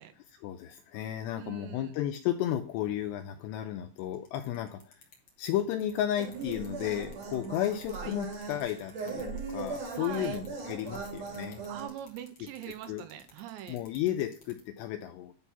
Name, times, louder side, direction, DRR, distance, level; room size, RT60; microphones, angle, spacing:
voice 1, 0.3-5.0 5.4-11.6 12.9-13.1 13.7-15.3, left 11 dB, 85° left, 8 dB, 2.4 m, -33 dB
voice 2, 1.4-1.9 8.0-8.2 10.0-10.4 11.7-13.8, right 11 dB, 80° right, 10 dB, 2.8 m, -43 dB
sound 1, 4.0-14.6, left 6 dB, 45° left, 2.2 m, -55 dB
sound 2, 6.2-11.9, right 4 dB, 45° right, 2.9 m, -39 dB
11.0 x 4.2 x 5.7 m, 0.41 s
omnidirectional pair, 5.5 m